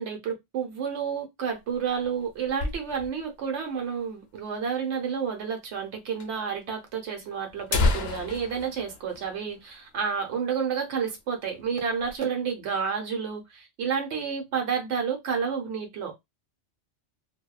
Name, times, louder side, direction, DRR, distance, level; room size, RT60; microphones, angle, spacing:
voice 1, 0.0-16.2, right 6 dB, 70° right, 1.0 m, -30 dB
sound 1, 1.5-3.3 3.7-3.8 4.0-4.1 4.7-4.8 5.8-5.9 6.2-6.3 7.0-7.1 7.5-10.1 10.4-10.5 11.0-11.2 11.6-12.2, left 3 dB, 65° left, 0.8 m, -30 dB
2.6 x 2.1 x 2.2 m
omnidirectional pair, 1.3 m